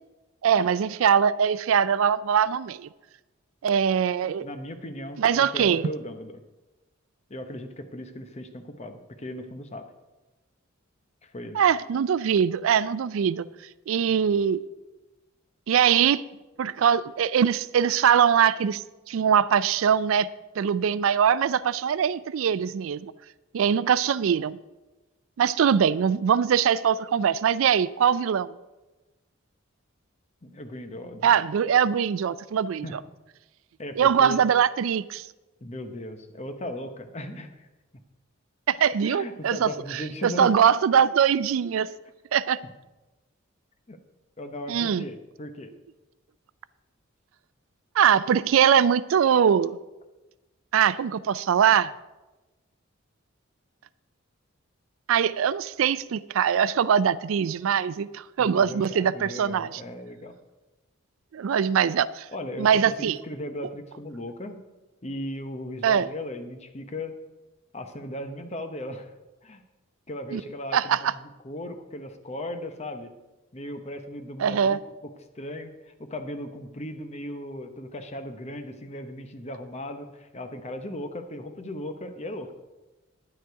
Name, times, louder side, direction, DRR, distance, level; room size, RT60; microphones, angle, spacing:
voice 1, 0.4-2.9 3.6-4.5 5.2-5.9 11.5-13.4 13.9-14.6 15.7-16.2 16.6-18.8 19.1-20.3 20.6-23.1 23.5-24.6 25.4-28.5 31.2-32.9 34.0-35.3 38.7-41.9 42.3-42.6 44.7-45.0 48.0-49.8 50.7-51.9 55.1-59.8 61.3-62.3 62.6-63.2 65.8-66.1 70.3-70.4 70.7-71.1 74.4-74.8, right 8 dB, 75° right, 0.4 m, -22 dB
voice 2, 4.4-6.4 7.3-9.9 11.2-11.6 30.4-31.4 32.8-33.0 33.8-34.4 35.6-37.7 39.0-40.5 43.9-44.0 44.4-45.7 58.4-60.3 62.3-64.6 65.0-67.2 67.7-69.1 69.4-69.6 70.1-73.1 73.5-74.8 75.3-82.5, left 1 dB, 30° left, 0.8 m, -37 dB
9.9 x 9.5 x 4.6 m
head